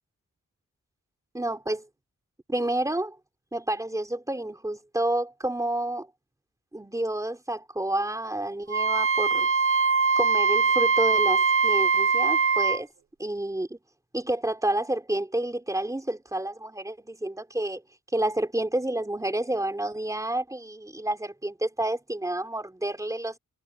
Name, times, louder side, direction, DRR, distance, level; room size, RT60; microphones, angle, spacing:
voice 1, 1.3-1.9 2.5-3.2 3.5-6.1 6.7-9.8 10.2-12.9 13.2-13.8 14.1-17.8 18.1-23.4, right 1 dB, 10° right, 3.7 m, -29 dB
Wind instrument woodwind instrument, 8.7-12.8, right 4 dB, 40° right, 0.7 m, -22 dB
wide cardioid pair, 175°, 33 cm